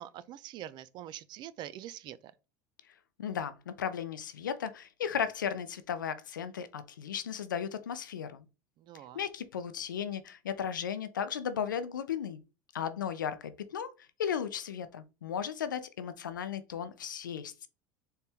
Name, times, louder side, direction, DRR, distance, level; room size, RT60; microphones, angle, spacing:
voice 1, 0.0-2.3 8.8-9.2, right 12 dB, 45° right, 0.5 m, -44 dB
voice 2, 3.2-8.4 9.1-12.4 12.7-13.9 14.2-17.7, left 8 dB, 90° left, 0.5 m, -35 dB
4.4 x 3.3 x 3.4 m
hypercardioid pair, 90°, 10 cm